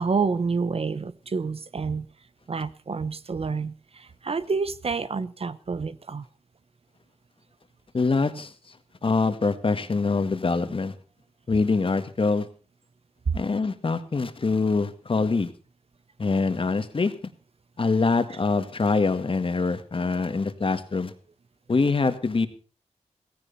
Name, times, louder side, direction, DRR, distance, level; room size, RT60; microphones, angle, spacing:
voice 1, 0.0-2.1 2.5-6.2 13.3-13.4, right 5 dB, 55° right, 0.9 m, -28 dB
voice 2, 7.9-8.5 9.0-10.9 11.5-12.5 13.3-15.5 16.2-17.1 17.8-21.1 21.7-22.5, left 4 dB, 45° left, 1.9 m, -24 dB
17.0 x 16.0 x 4.2 m
wide cardioid pair, 125°, 12 cm